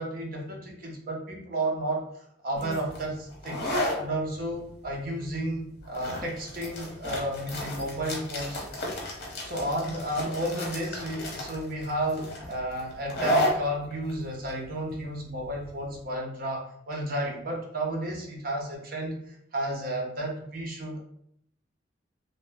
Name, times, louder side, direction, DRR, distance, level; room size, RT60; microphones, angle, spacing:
voice 1, 0.0-3.7 4.0-8.6 9.4-21.0, right 1 dB, 50° right, 0 dB, 0.7 m, -32 dB
sound 1, 2.6-16.0, left 1 dB, 55° left, 0.8 m, -33 dB
2.7 x 2.1 x 3.3 m, 0.71 s
head